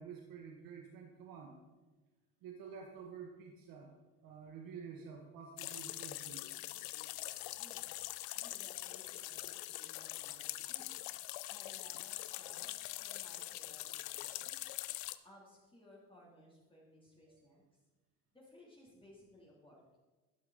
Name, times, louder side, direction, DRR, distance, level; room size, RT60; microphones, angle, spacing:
voice 1, 0.0-1.6 2.4-3.9 4.2-6.5 17.3-17.5, right 6 dB, 65° right, 2 dB, 1.3 m, -50 dB
sound 1, 5.6-15.2, left 17 dB, 75° left, 0.6 m, -43 dB
voice 2, 7.6-8.1 8.3-10.9 11.5-14.7 15.2-17.6 18.3-20.0, left 1 dB, 15° left, -4 dB, 2.9 m, -60 dB
11.5 x 6.4 x 4.1 m, 1.2 s
supercardioid pair, 85°, 37 cm